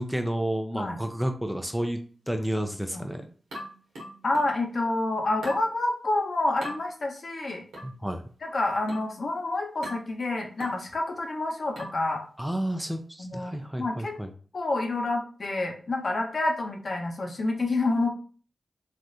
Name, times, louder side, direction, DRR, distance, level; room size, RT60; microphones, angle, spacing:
voice 1, 0.0-2.0 2.3-3.3 7.8-8.2 12.4-14.3, right 1 dB, 5° right, 6 dB, 0.5 m, -30 dB
sound 1, 3.5-4.6 5.4-5.7 6.6-6.8 7.7-8.0 8.9-9.2 9.8-10.1 10.6-10.9 11.8-12.1, equal, 85° right, 1.1 m, -39 dB
voice 2, 4.2-7.6 8.4-12.2 13.2-14.2 14.5-18.1, left 2 dB, 60° left, 2 dB, 0.8 m, -28 dB
3.3 x 2.4 x 2.7 m, 0.40 s
cardioid pair, 45°, 0 cm